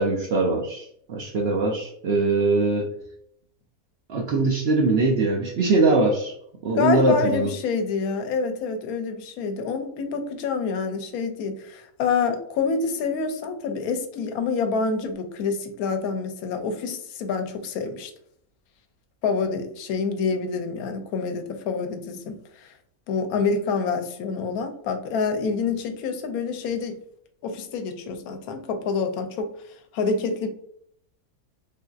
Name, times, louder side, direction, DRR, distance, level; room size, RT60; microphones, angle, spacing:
voice 1, 0.0-2.9 4.1-6.3 6.6-7.5, right 3 dB, 80° right, -1 dB, 0.5 m, -22 dB
voice 2, 6.8-18.1 19.2-22.7 23.1-27.0 27.4-29.5 29.9-30.5, left 5 dB, 75° left, 7 dB, 1.0 m, -27 dB
3.4 x 2.6 x 2.3 m, 0.69 s
omnidirectional pair, 1.6 m